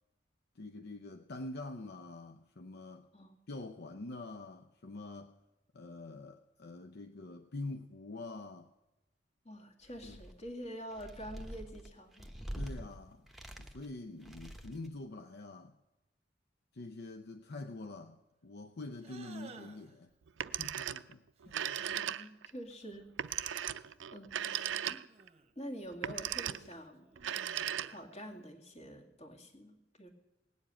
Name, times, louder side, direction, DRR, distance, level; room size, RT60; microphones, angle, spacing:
voice 1, 0.6-3.1 3.5-5.4 5.7-8.7 10.0-10.2 12.5-13.3 13.6-15.8 16.7-20.1 20.6-21.8, left 2 dB, 60° left, 7 dB, 0.6 m, -45 dB
voice 2, 9.4-12.3 21.8-23.1 23.3-23.8 24.1-25.0 25.6-27.3 27.8-30.1, equal, 35° left, 2 dB, 2.1 m, -47 dB
sound 1, 9.8-10.5 10.9-12.8 13.3-13.9 14.2-14.9, equal, ahead, 1.1 m, -45 dB
sound 2, 19.0-20.0 21.4-22.0 23.3-24.0 24.5-25.5 26.3-28.1, right 4 dB, 35° right, 1.0 m, -57 dB
Telephone, 20.3-21.1 21.4-22.5 23.2-25.3 25.9-26.7 27.2-28.2, right 10 dB, 80° right, 0.4 m, -37 dB
18.0 x 7.3 x 8.8 m, 0.98 s
head